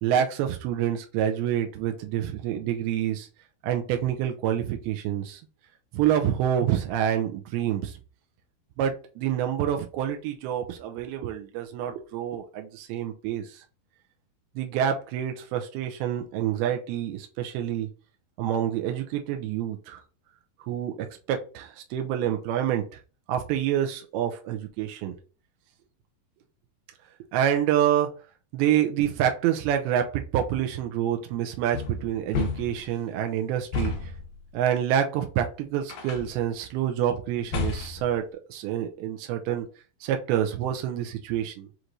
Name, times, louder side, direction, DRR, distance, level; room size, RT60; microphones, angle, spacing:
voice 1, 0.0-3.3 3.6-5.4 5.9-7.9 8.8-13.4 14.6-17.9 18.4-20.0 20.7-20.9 21.3-22.8 23.3-25.2 27.3-28.1 28.5-33.9 34.5-38.2 38.5-39.7 40.0-41.7, right 10 dB, 85° right, 4 dB, 2.5 m, -27 dB
sound 1, 31.7-32.9 33.7-34.3 35.9-36.4 37.5-38.1, left 5 dB, 80° left, 1.7 m, -31 dB
6.5 x 3.0 x 2.5 m, 0.35 s
omnidirectional pair, 4.6 m